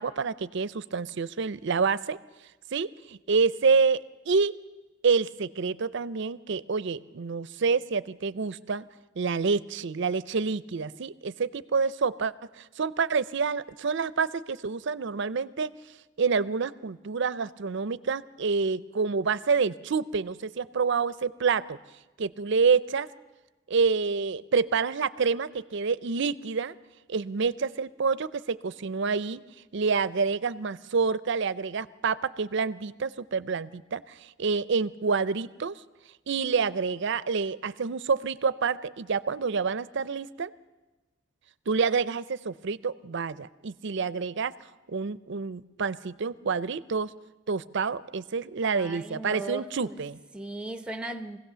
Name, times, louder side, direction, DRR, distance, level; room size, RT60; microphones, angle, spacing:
voice 1, 0.0-2.2 2.7-4.6 5.0-8.9 9.2-15.7 16.2-21.8 22.2-23.1 23.7-26.8 27.1-29.4 29.7-35.8 36.3-40.5 41.7-44.5 44.9-47.1 47.5-50.2, right 5 dB, 65° right, 0.5 m, -28 dB
voice 2, 48.6-50.0 50.3-51.4, right 2 dB, 5° right, 0.8 m, -37 dB
23.0 x 16.5 x 6.9 m
head